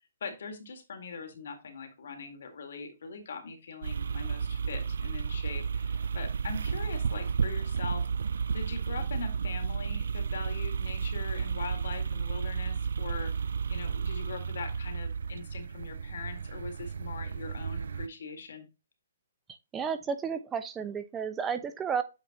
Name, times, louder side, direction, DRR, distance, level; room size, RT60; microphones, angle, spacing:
voice 1, 0.2-8.1 8.5-18.7, left 4 dB, 70° left, 1.8 m, -41 dB
sound 1, 3.8-18.1, right 6 dB, 75° right, 0.3 m, -32 dB
voice 2, 19.7-22.0, right 6 dB, 15° right, 0.8 m, -32 dB
8.0 x 4.0 x 2.9 m
hypercardioid pair, 145°, 0 cm